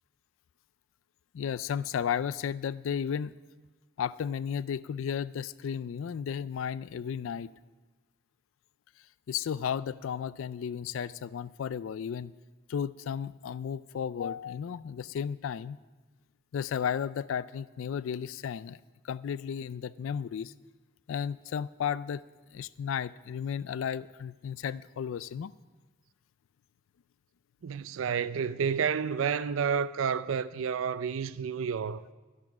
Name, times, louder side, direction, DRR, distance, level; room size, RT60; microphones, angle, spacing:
voice 1, 1.3-3.3 4.0-7.5 9.3-12.3 12.7-15.8 16.5-18.8 19.0-20.5 21.1-22.2 22.5-25.5, left 7 dB, 80° left, 0.3 m, -34 dB
voice 2, 27.6-32.0, right 6 dB, 85° right, 0.4 m, -30 dB
13.0 x 11.0 x 5.9 m
head